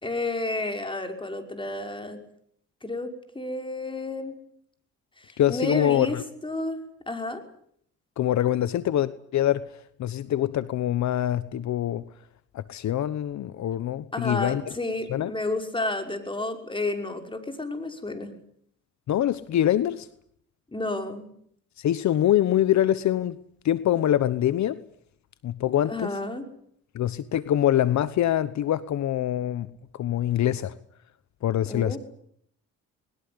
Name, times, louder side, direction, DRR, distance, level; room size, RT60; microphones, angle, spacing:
voice 1, 0.0-2.2 2.8-4.4 5.2-6.8 7.1-7.4 14.1-18.3 20.7-21.3 25.9-26.5 31.7-32.0, left 2 dB, 15° left, 5.7 m, -31 dB
voice 2, 5.4-6.2 8.2-9.7 10.0-12.0 12.5-14.8 15.1-15.3 19.1-20.1 21.8-23.4 23.6-24.8 25.4-26.2 26.9-29.7 29.9-30.7 31.4-32.0, left 11 dB, 65° left, 1.1 m, -24 dB
21.5 x 20.5 x 9.8 m
cardioid pair, 90°, 30 cm